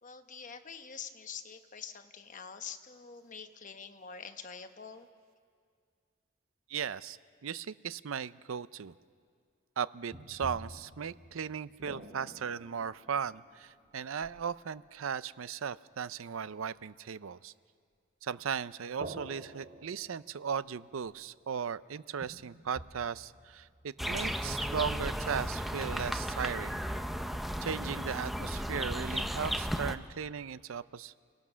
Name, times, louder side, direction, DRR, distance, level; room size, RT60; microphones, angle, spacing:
voice 1, 0.0-5.1, left 6 dB, 40° left, 7 dB, 1.0 m, -46 dB
voice 2, 6.7-8.9 9.8-17.5 18.2-26.8 27.6-31.1, right 7 dB, 80° right, 17 dB, 0.5 m, -37 dB
sound 1, 10.1-14.8 19.0-21.3 21.8-21.9 22.2-24.5, right 1 dB, 45° right, 2.4 m, -49 dB
sound 2, 24.0-30.0, equal, ahead, 0.6 m, -34 dB
28.5 x 17.5 x 6.2 m, 2.2 s
head